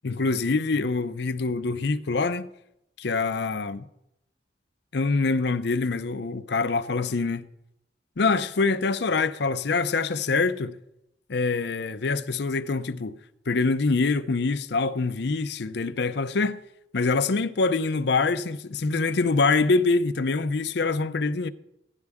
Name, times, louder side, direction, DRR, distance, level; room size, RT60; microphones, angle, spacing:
voice 1, 0.0-2.5 3.0-3.8 4.9-7.5 8.2-10.7 11.3-13.1 13.5-16.6 16.9-21.5, left 3 dB, 65° left, 0.6 m, -25 dB
16.0 x 11.0 x 3.5 m
head